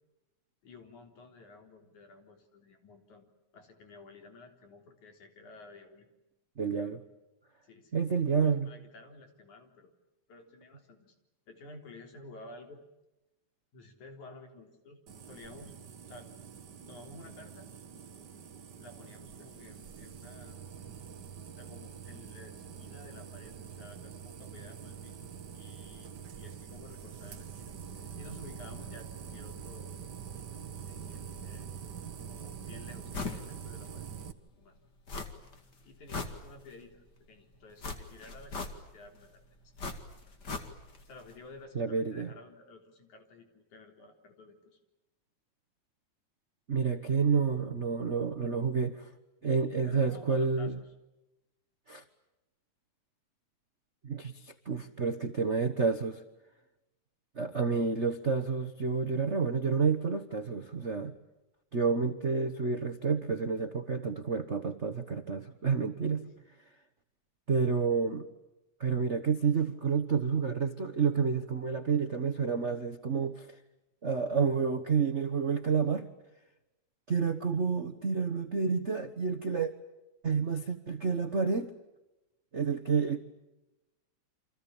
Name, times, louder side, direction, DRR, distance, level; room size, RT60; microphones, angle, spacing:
voice 1, 0.6-3.3 3.5-6.1 7.6-9.9 10.3-11.1 11.5-12.8 13.7-15.0 15.3-15.8 16.1-16.3 16.9-17.7 18.8-20.6 21.6-29.9 30.9-31.9 32.3-34.1 34.6-34.8 35.8-39.7 41.0-44.8 49.8-50.7 66.2-66.4, left 2 dB, 75° left, 4 dB, 5.1 m, -52 dB
voice 2, 6.6-7.0 7.9-8.7 41.7-42.3 46.7-49.1 49.4-50.8 51.9-52.0 54.0-56.2 57.4-61.1 61.7-66.2 67.5-68.2 68.8-73.6 74.0-76.1 77.1-79.7 80.2-81.7 82.5-83.2, right 5 dB, 80° right, 7 dB, 0.6 m, -29 dB
sound 1, 15.1-34.3, right 7 dB, 45° right, 1.5 m, -45 dB
sound 2, 33.1-33.5 33.8-33.9 35.1-35.6 35.9-36.9 37.8-39.1 39.8-41.0 41.3-41.4, left 4 dB, 35° left, 2.7 m, -39 dB
30.0 x 26.5 x 7.2 m, 0.97 s
omnidirectional pair, 3.4 m